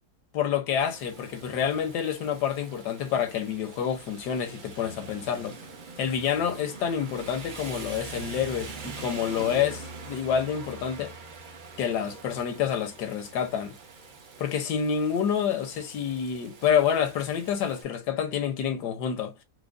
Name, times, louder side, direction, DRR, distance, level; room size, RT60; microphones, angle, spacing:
voice 1, 0.3-5.6 6.0-11.1 11.8-13.8 14.4-19.3, left 8 dB, 80° left, 1.3 m, -28 dB
Rain, 0.8-17.8, right 4 dB, 55° right, 0.5 m, -43 dB
4.7 x 2.2 x 2.4 m
omnidirectional pair, 1.8 m